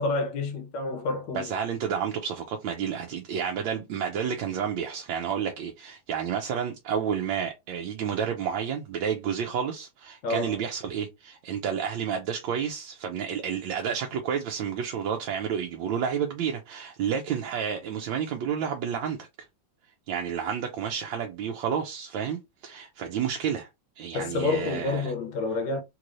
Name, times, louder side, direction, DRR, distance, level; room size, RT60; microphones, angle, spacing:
voice 1, 0.0-1.5 10.2-10.6 24.1-25.8, left 3 dB, 75° left, 1.4 m, -29 dB
voice 2, 1.3-19.3 20.1-23.7 24.0-25.1, right 7 dB, 85° right, 1.4 m, -30 dB
3.6 x 3.1 x 2.5 m
omnidirectional pair, 2.1 m